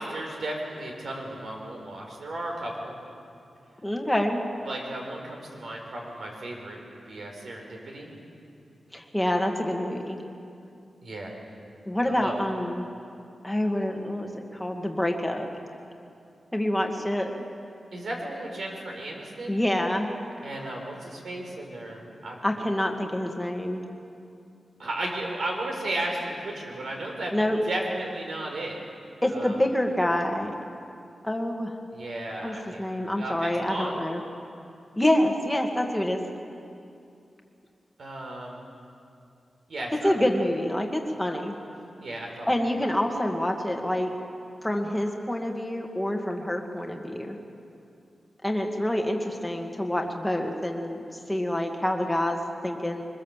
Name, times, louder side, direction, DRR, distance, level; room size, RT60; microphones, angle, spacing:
voice 1, 0.0-3.0 4.6-8.1 11.0-11.3 12.1-12.3 17.9-19.6 20.4-22.4 24.8-27.3 27.7-28.8 29.3-29.6 31.9-32.8 33.2-34.0 38.0-38.6 39.7-40.2 42.0-42.5, right 1 dB, 65° right, 1 dB, 4.6 m, -34 dB
voice 2, 3.8-4.5 8.9-10.2 11.9-12.9 13.4-15.5 16.5-17.3 19.5-20.1 22.4-23.8 27.3-27.6 29.2-30.5 31.2-31.8 32.4-34.2 35.0-36.2 40.0-41.6 42.5-44.1 44.6-47.4 48.4-53.0, left 1 dB, 5° left, 2 dB, 1.9 m, -27 dB
23.5 x 21.0 x 7.4 m, 2.6 s
wide cardioid pair, 150°, 0 cm